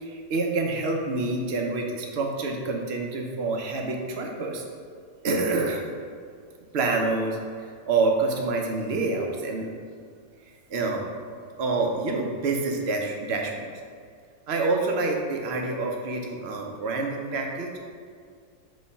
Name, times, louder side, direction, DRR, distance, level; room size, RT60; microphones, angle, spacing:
voice 1, 0.0-4.6 5.2-5.8 6.7-9.8 10.7-11.0 11.6-13.7 14.5-17.7, right 3 dB, 55° right, 1 dB, 0.7 m, -27 dB
5.4 x 3.2 x 5.6 m, 2.1 s
omnidirectional pair, 1.8 m